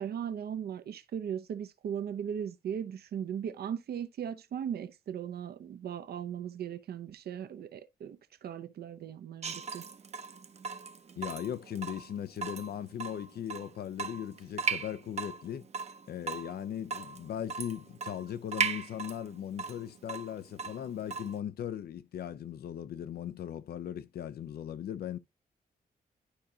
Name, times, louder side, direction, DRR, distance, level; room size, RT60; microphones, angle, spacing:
voice 1, 0.0-9.8, right 8 dB, 85° right, 0.7 m, -38 dB
Water tap faucet / Drip, 9.4-21.4, right 5 dB, 45° right, 0.6 m, -38 dB
voice 2, 11.2-15.7 16.1-25.2, left 10 dB, 85° left, 0.6 m, -38 dB
11.5 x 4.9 x 2.8 m
wide cardioid pair, 120°, 16 cm